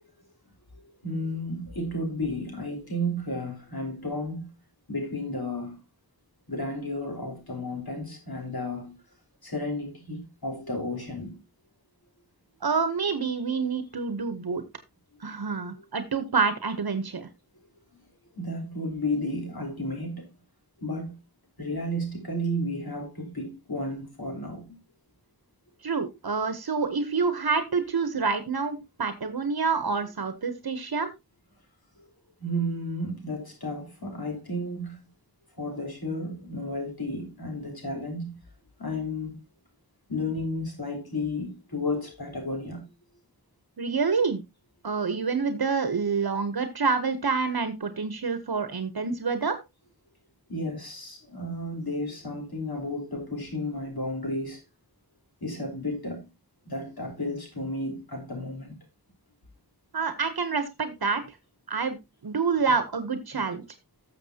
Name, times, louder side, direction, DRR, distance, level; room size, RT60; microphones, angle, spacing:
voice 1, 1.0-4.5 4.9-5.8 6.5-9.0 9.4-11.4 18.3-20.3 20.8-21.2 21.6-24.8 32.4-35.0 35.6-38.4 38.8-39.4 40.1-42.9 50.5-54.6 55.4-56.3 56.7-58.7, left 1 dB, 85° left, 3.9 m, -32 dB
voice 2, 12.6-14.6 15.2-17.3 25.8-31.1 43.8-44.4 44.8-49.6 59.9-61.4 61.7-62.0 62.2-63.6, right 5 dB, 80° right, 1.0 m, -27 dB
13.0 x 6.9 x 2.8 m
wide cardioid pair, 50°, 36 cm